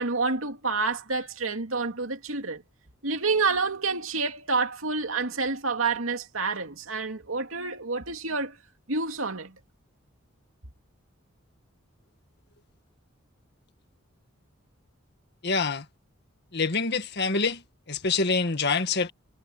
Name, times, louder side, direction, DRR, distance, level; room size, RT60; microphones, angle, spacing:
voice 1, 0.0-2.6 3.0-8.5 8.9-9.5, right 4 dB, 85° right, 2.6 m, -28 dB
voice 2, 15.4-15.8 16.5-17.6 17.9-19.1, left 4 dB, 55° left, 1.9 m, -26 dB
head